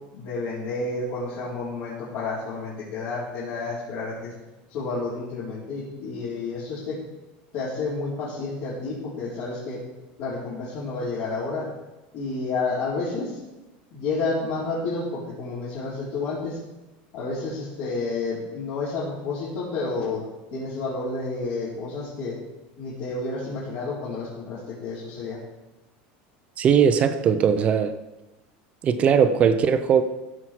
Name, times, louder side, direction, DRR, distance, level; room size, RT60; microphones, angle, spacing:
voice 1, 0.1-4.3 4.7-7.0 7.5-9.8 10.2-11.7 12.1-13.4 13.9-16.6 17.1-20.2 20.5-22.4 22.8-25.4, left 3 dB, 55° left, -10 dB, 4.4 m, -30 dB
voice 2, 26.6-27.9 28.8-30.0, right 7 dB, 30° right, 10 dB, 0.7 m, -19 dB
16.0 x 7.3 x 4.7 m, 1.1 s
supercardioid pair, 155°, 4 cm